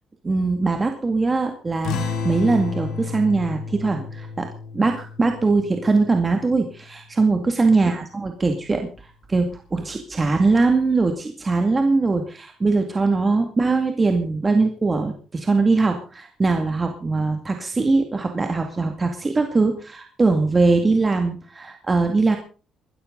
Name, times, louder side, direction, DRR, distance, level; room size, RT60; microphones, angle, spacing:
voice 1, 0.2-4.5 4.7-8.9 9.3-22.4, right 3 dB, 25° right, 4 dB, 2.2 m, -21 dB
sound 1, 1.8-6.9, left 5 dB, 80° left, 3.5 m, -32 dB
22.5 x 13.0 x 3.9 m, 0.37 s
cardioid pair, 110°, 0 cm